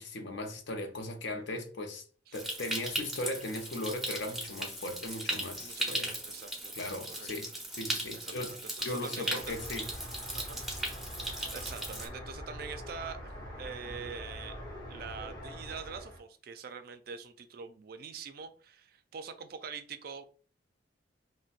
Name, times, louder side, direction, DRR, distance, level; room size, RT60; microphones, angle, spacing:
voice 1, 0.0-2.0 2.3-6.2 6.7-7.5 7.8-8.5 8.8-9.9, left 1 dB, 70° left, 0.6 m, -38 dB
Stream, 2.3-12.1, right 1 dB, ahead, 0.6 m, -38 dB
voice 2, 5.6-6.7 7.1-7.3 8.1-9.6 10.3-10.6 10.9-11.0 11.5-13.3 13.6-14.6 14.9-20.2, right 6 dB, 55° right, 0.4 m, -44 dB
sound 1, 9.4-16.2, equal, 20° left, 1.0 m, -44 dB
3.9 x 2.1 x 2.5 m
head